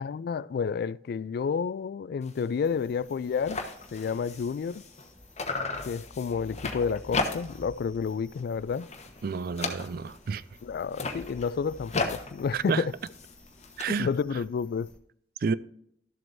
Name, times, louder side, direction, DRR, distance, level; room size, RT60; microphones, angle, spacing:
voice 1, 0.0-3.6 3.9-4.8 5.9-8.9 10.6-12.9 14.0-14.9, left 6 dB, 60° left, 0.3 m, -30 dB
sound 1, 2.2-2.5 2.8-2.9 3.1-5.1 5.4-7.7 8.1-8.4 8.7-10.3 10.8-13.8, left 3 dB, 40° left, 1.1 m, -35 dB
sound 2, 2.6-15.0, left 1 dB, 5° left, 1.0 m, -52 dB
voice 2, 9.2-10.4 12.5-12.9 13.8-14.1 15.4-15.5, right 5 dB, 55° right, 0.4 m, -30 dB
12.5 x 7.6 x 2.6 m
head